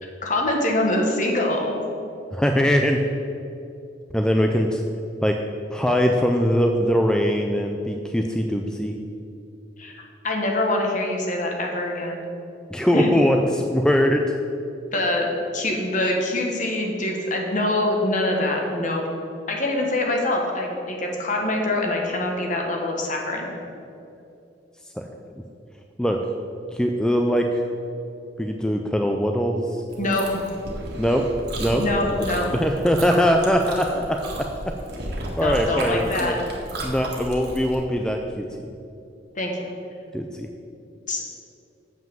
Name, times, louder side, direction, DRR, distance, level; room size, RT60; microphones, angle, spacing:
voice 1, 0.0-1.8 9.8-9.9 10.2-12.2 12.9-13.1 14.9-19.0 19.5-23.5 30.0-30.5 31.7-32.5 35.4-36.4 39.3-39.5 41.1-41.2, left 1 dB, 45° left, 1 dB, 1.4 m, -24 dB
voice 2, 2.3-3.0 4.1-4.8 5.2-5.4 5.7-9.0 12.7-14.3 25.0-25.1 26.0-26.2 26.7-27.6 28.4-29.8 31.0-31.3 31.6-32.1 32.5-34.7 35.4-36.3 36.8-38.7 40.1-40.5, equal, 5° left, 3 dB, 0.4 m, -22 dB
Chewing mastication, 29.9-37.7, right 1 dB, 60° right, 1.7 m, -34 dB
7.4 x 5.8 x 7.3 m, 2.7 s
head